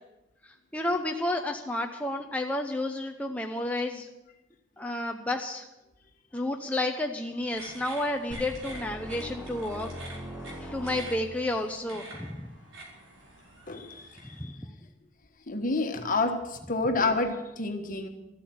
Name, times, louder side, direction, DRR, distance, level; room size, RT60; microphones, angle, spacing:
voice 1, 0.4-4.1 4.8-5.7 6.3-9.9 10.6-12.5 14.4-14.5, left 1 dB, 5° left, 2 dB, 0.7 m, -31 dB
sound 1, 7.5-14.4, right 2 dB, 85° right, 4.5 m, -47 dB
sound 2, 8.3-11.5, equal, 10° right, 1.9 m, -41 dB
voice 2, 13.7-14.5 15.5-18.1, left 3 dB, 45° left, 6 dB, 1.5 m, -29 dB
13.5 x 8.3 x 9.2 m, 0.96 s
head